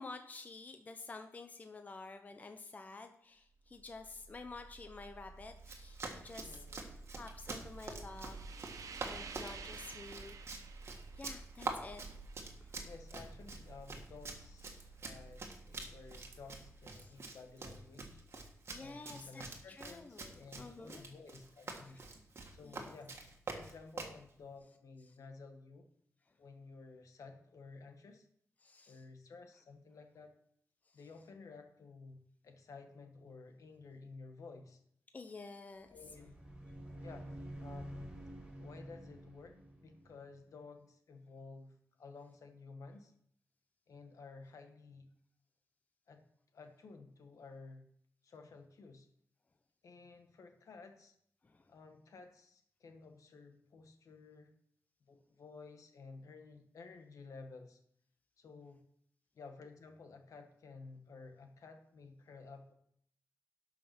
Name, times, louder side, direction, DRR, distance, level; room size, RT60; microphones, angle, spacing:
voice 1, 0.0-6.6 7.1-8.4 9.0-10.3 11.2-12.0 12.6-12.7 17.0-17.1 18.7-19.5 19.8-21.0 22.6-22.9 28.6-29.0 35.1-35.9 51.4-51.6, left 3 dB, 30° left, 6 dB, 0.7 m, -50 dB
sound 1, 3.6-17.7, right 4 dB, 85° right, 1.0 m, -52 dB
Run, 5.6-24.2, right 3 dB, 50° right, 1.6 m, -46 dB
voice 2, 6.3-7.0 12.8-18.2 18.8-22.0 22.5-23.2 23.5-25.9 26.4-28.3 28.9-30.3 30.9-34.8 35.9-36.3 37.0-38.2 38.6-43.1 43.9-45.1 46.1-46.2 46.5-47.9 48.2-49.1 49.8-51.1 51.7-54.5 55.1-57.8 58.4-58.8 59.3-62.7, left 4 dB, 85° left, 5 dB, 1.5 m, -54 dB
sound 2, 35.8-40.5, right 1 dB, 15° right, 3.5 m, -49 dB
11.5 x 5.9 x 6.0 m, 0.66 s
wide cardioid pair, 170°, 6 cm